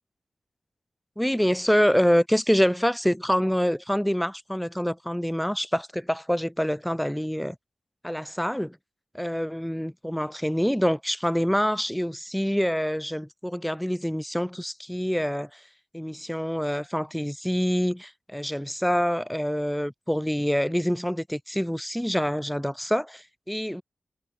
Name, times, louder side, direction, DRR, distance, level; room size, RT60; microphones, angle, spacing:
voice 1, 1.2-7.6 8.0-8.8 9.1-15.6 15.9-23.8, equal, 5° left, 4.4 m, -26 dB
cardioid pair, 45°, 0 cm